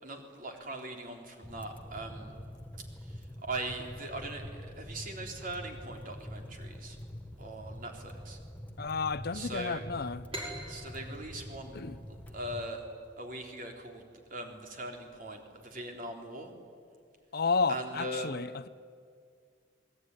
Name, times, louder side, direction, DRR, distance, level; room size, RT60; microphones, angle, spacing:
voice 1, 0.0-2.3 3.0-7.0 7.4-8.4 9.3-9.8 10.7-11.8 12.1-12.8 13.2-14.0 14.3-16.5 17.7-18.4, right 1 dB, 45° right, 3.8 m, -40 dB
sound 1, 1.4-12.7, equal, 10° left, 1.3 m, -45 dB
voice 2, 8.8-10.2 11.7-12.0 17.3-18.7, left 4 dB, 50° left, 0.7 m, -31 dB
sound 2, 10.3-13.7, right 1 dB, 30° right, 5.5 m, -45 dB
27.0 x 20.5 x 9.8 m
head